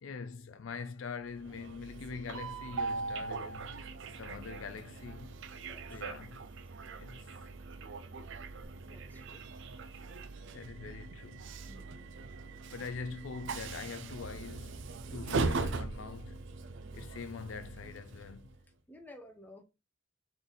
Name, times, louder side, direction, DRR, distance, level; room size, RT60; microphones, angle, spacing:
voice 1, 0.0-3.8 4.2-5.4 5.9-6.4 7.0-7.2 10.5-11.5 12.7-16.5 16.9-18.5, left 5 dB, 70° left, 0.4 m, -43 dB
Train, 1.3-18.6, right 3 dB, 65° right, 0.5 m, -40 dB
voice 2, 5.5-6.0 8.8-9.4 11.7-12.3 18.9-19.6, left 1 dB, 10° left, 0.7 m, -54 dB
3.9 x 3.3 x 3.8 m
head